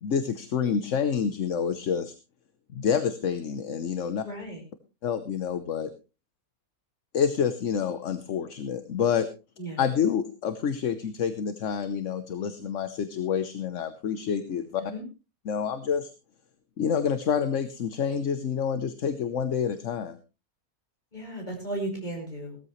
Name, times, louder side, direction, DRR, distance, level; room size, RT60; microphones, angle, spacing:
voice 1, 0.0-2.1 2.7-4.2 5.0-5.9 7.1-9.3 9.8-14.8 15.4-16.1 16.8-20.2, left 7 dB, 60° left, 11 dB, 1.2 m, -28 dB
voice 2, 4.2-4.6 9.6-9.8 14.9-15.0 21.1-22.6, right 1 dB, 30° left, 1 dB, 5.3 m, -35 dB
17.0 x 13.5 x 3.1 m, 0.30 s
omnidirectional pair, 1.5 m